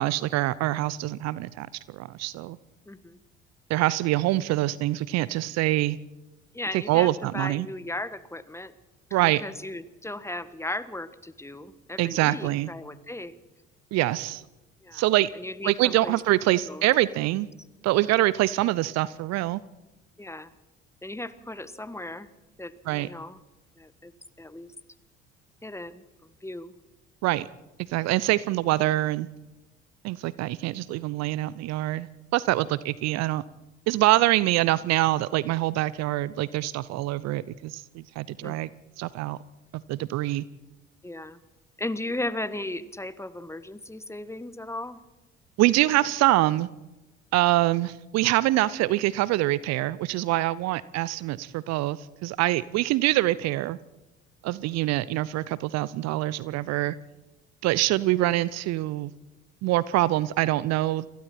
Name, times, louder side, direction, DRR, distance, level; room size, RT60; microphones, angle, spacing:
voice 1, 0.0-2.6 3.7-6.0 6.7-7.7 9.1-9.4 12.0-12.7 13.9-14.4 14.9-15.3 15.6-17.5 17.8-19.6 22.9-23.1 27.2-27.5 27.9-29.3 30.0-32.1 32.3-33.4 33.9-38.7 39.0-39.4 39.7-40.4 45.6-46.7 47.3-53.8 54.4-56.9 57.6-59.1 59.6-61.1, right 16 dB, 55° right, 20 dB, 0.7 m, -25 dB
voice 2, 2.9-3.2 6.5-7.1 7.3-8.7 9.2-13.3 14.8-15.0 15.4-16.1 16.5-16.8 20.2-20.5 21.0-22.3 22.6-23.4 23.8-24.1 24.4-24.7 25.6-26.0 26.4-26.7 38.4-38.8 41.0-41.4 41.8-45.0, left 1 dB, 10° left, 14 dB, 1.4 m, -36 dB
29.0 x 22.0 x 4.4 m, 1.1 s
figure-of-eight pair, 55°, 32 cm